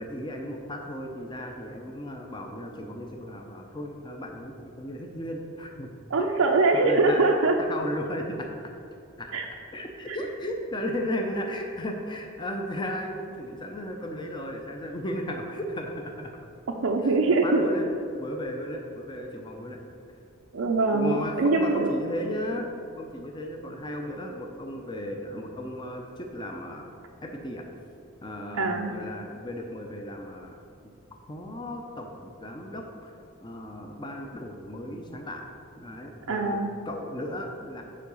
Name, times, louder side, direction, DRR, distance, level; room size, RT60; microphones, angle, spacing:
voice 1, 0.0-5.9 6.2-6.3 6.7-7.2 7.7-8.7 9.2-9.3 9.7-16.4 17.0-17.2 17.4-17.8 18.2-19.8 20.9-22.7 23.0-26.9 27.2-27.7 28.2-30.6 30.8-30.9 31.3-33.1 33.4-35.5 35.8-36.6 36.9-37.8, equal, 20° left, 2 dB, 0.6 m, -35 dB
voice 2, 6.1-7.5 9.3-9.5 10.1-10.2 16.8-17.8 20.5-21.9 28.6-28.9 36.3-36.7, right 3 dB, 80° right, 1 dB, 0.6 m, -23 dB
7.5 x 4.7 x 6.9 m, 2.6 s
head